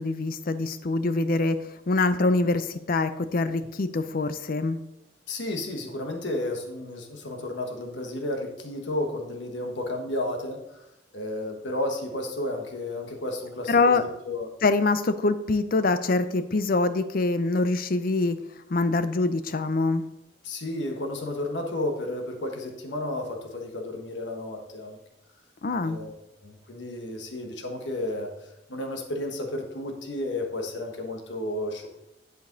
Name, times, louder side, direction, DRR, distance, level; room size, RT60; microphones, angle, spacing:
voice 1, 0.0-1.6 1.9-4.8 13.7-14.0 14.6-18.4 18.7-20.1 25.6-26.0, left 3 dB, 50° left, 12 dB, 0.5 m, -24 dB
voice 2, 5.3-10.9 11.1-14.5 20.4-25.0 25.8-28.3 28.7-31.9, left 1 dB, 80° left, 3 dB, 1.3 m, -32 dB
10.5 x 5.2 x 3.9 m, 0.90 s
head